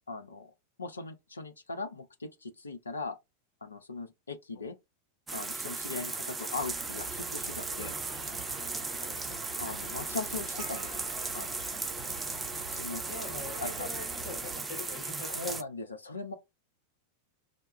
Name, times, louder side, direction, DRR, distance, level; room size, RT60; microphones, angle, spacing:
voice 1, 0.1-0.5 0.8-3.2 3.6-4.8 5.3-8.0 9.6-11.0 11.3-11.6 12.7-13.0 13.6-13.9 15.2-16.4, left 3 dB, 75° left, 0.4 m, -39 dB
sound 1, 5.3-15.6, right 3 dB, 10° right, 0.4 m, -37 dB
sound 2, 6.6-14.6, right 4 dB, 30° right, 1.0 m, -46 dB
voice 2, 9.0-9.4 13.0-15.7, left 3 dB, 55° left, 0.8 m, -44 dB
2.2 x 2.1 x 3.0 m
figure-of-eight pair, 90°, 0 cm